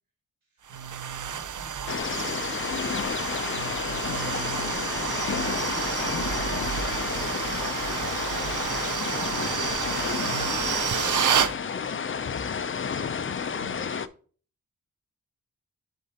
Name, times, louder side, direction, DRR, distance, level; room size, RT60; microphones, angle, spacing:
sound 1, 0.7-11.5, right 8 dB, 60° right, 0.6 m, -30 dB
voice 1, 0.7-2.6 3.5-6.0 10.0-10.9 13.4-14.0, right 4 dB, 80° right, -1 dB, 3.1 m, -43 dB
sound 2, 1.9-14.1, left 6 dB, 40° left, 0.4 m, -31 dB
voice 2, 7.9-9.2, equal, 25° right, 0 dB, 1.4 m, -47 dB
11.0 x 4.2 x 2.8 m, 0.41 s
wide cardioid pair, 120°, 34 cm